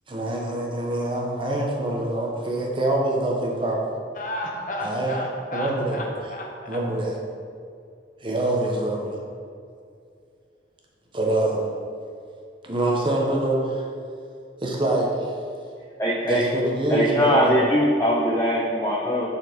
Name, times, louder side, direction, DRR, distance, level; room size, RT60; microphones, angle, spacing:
voice 1, 0.1-3.8 4.8-5.1 5.5-6.0 6.7-7.2 8.2-9.2 11.1-11.7 12.6-13.8 14.6-15.3 16.2-17.6, right 1 dB, 30° right, -1 dB, 0.9 m, -25 dB
voice 2, 4.1-6.8, equal, 45° left, 0 dB, 1.0 m, -32 dB
voice 3, 16.0-16.5 16.9-19.3, equal, 15° left, -5 dB, 0.6 m, -21 dB
7.0 x 4.3 x 5.1 m, 2.3 s
head